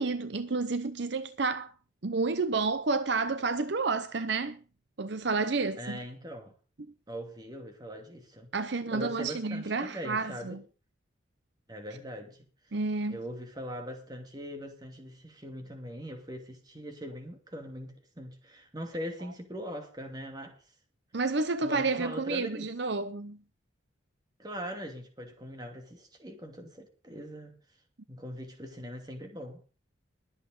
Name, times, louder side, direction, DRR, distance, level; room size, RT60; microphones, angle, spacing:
voice 1, 0.0-1.7 2.0-4.6 5.0-6.0 8.5-10.6 12.7-13.2 21.1-23.4, right 3 dB, 60° right, 0.7 m, -30 dB
voice 2, 5.8-6.5 7.1-8.5 8.9-10.6 11.7-12.4 13.1-20.6 21.6-22.7 24.4-27.6 28.1-29.7, equal, 20° right, 2.5 m, -41 dB
21.5 x 8.3 x 3.9 m
head